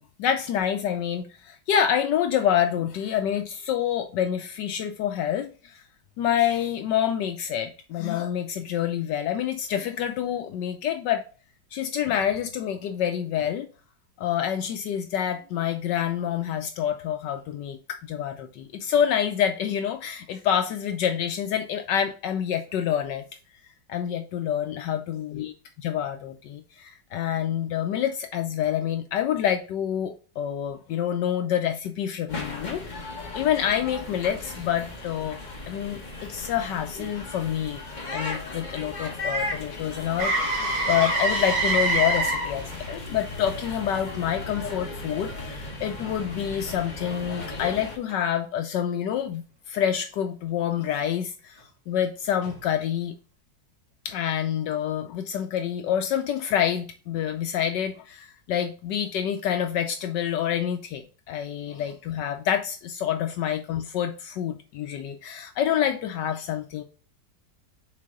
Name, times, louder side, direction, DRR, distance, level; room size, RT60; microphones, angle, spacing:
voice 1, 0.0-5.8 6.2-11.2 11.7-13.7 14.2-23.2 23.9-25.5 25.8-33.0 33.3-35.4 35.7-37.8 38.1-53.1 54.0-66.8, left 9 dB, 75° left, 1.3 m, -27 dB
sound 1, 32.3-48.0, left 2 dB, 30° left, 1.1 m, -37 dB
Motor vehicle (road), 40.2-48.1 52.4-52.6, right 2 dB, 70° right, 2.7 m, -29 dB
6.6 x 4.1 x 3.6 m
omnidirectional pair, 2.0 m